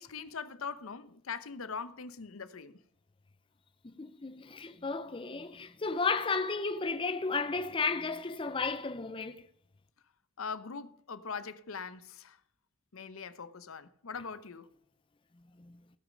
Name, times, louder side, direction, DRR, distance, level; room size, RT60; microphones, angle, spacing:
voice 1, 0.0-2.8 10.4-12.4 12.9-14.7, left 5 dB, 80° left, 0.8 m, -41 dB
voice 2, 3.8-9.5 15.6-15.7, left 4 dB, 25° left, 0.5 m, -33 dB
16.5 x 6.4 x 5.1 m
head